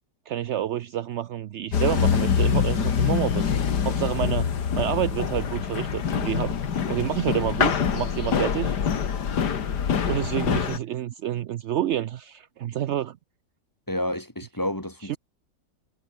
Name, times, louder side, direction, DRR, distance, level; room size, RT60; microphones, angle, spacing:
voice 1, 0.3-3.5 3.8-6.5 6.9-8.8 10.1-13.2 15.1-15.2, right 11 dB, 75° right, 0.6 m, -28 dB
sound 1, 1.7-10.8, left 7 dB, 75° left, 2.2 m, -25 dB
voice 2, 13.9-15.2, left 1 dB, 10° left, 3.1 m, -30 dB
omnidirectional pair, 1.8 m